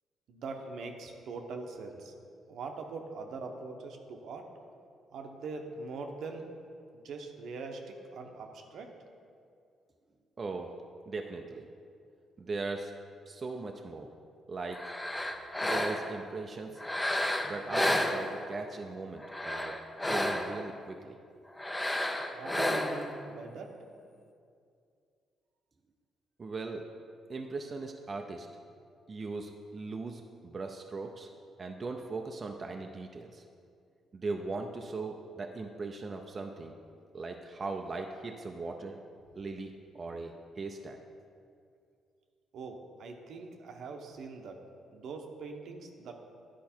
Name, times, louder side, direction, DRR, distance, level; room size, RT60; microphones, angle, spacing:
voice 1, 0.3-2.1 2.5-4.5 5.1-6.4 7.0-8.9 22.3-23.7 42.5-44.6 44.9-46.1, right 4 dB, 70° right, 3 dB, 0.8 m, -42 dB
voice 2, 10.4-10.7 11.1-11.6 12.4-12.9 13.3-14.1 14.5-14.8 15.6-16.8 17.5-19.8 20.1-21.2 26.4-26.9 27.3-28.5 29.1-31.3 31.6-33.4 34.1-36.7 37.1-39.0 39.3-41.0, right 3 dB, 35° right, 3 dB, 0.5 m, -39 dB
sound 1, 14.7-16.2 16.8-18.7 19.2-20.7 21.6-23.1, left 1 dB, 10° left, 0.6 m, -31 dB
10.5 x 4.6 x 4.4 m, 2.4 s
cardioid pair, 90°, 0 cm